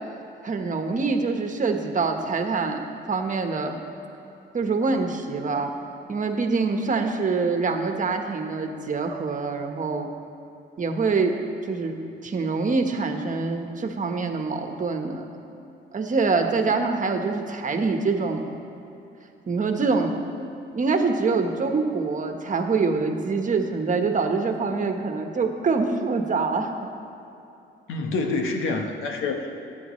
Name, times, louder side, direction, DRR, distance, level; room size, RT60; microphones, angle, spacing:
voice 1, 0.4-2.8 3.1-3.7 4.5-5.7 6.1-10.1 10.8-11.3 11.7-15.3 15.9-18.5 19.5-20.2 20.7-26.9, right 4 dB, 40° right, 4 dB, 1.3 m, -25 dB
voice 2, 27.9-29.6, left 3 dB, 85° left, 4 dB, 1.2 m, -27 dB
22.0 x 9.5 x 3.2 m, 2.9 s
cardioid pair, 90°, 20 cm